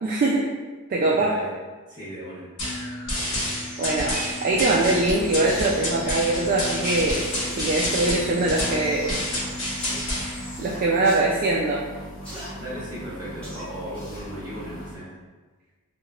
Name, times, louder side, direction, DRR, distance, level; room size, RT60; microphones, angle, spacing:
voice 1, 0.0-0.5 0.9-1.3 3.2-3.4 3.8-4.2 4.4-7.2 7.5-9.2 10.6-11.8, right 2 dB, 40° right, -3 dB, 0.3 m, -22 dB
voice 2, 1.0-1.5 1.9-2.5 12.5-15.1, equal, 20° right, -9 dB, 1.2 m, -36 dB
sound 1, 2.6-10.6, left 1 dB, 60° left, 1.0 m, -29 dB
sound 2, 4.5-14.9, equal, 20° left, 1.3 m, -40 dB
sound 3, 7.3-7.5 8.5-8.8 9.8-10.1 11.0-11.2 12.2-12.5 13.4-13.7 14.2-14.3, equal, 5° left, 1.0 m, -39 dB
4.8 x 2.2 x 2.3 m, 1.3 s
head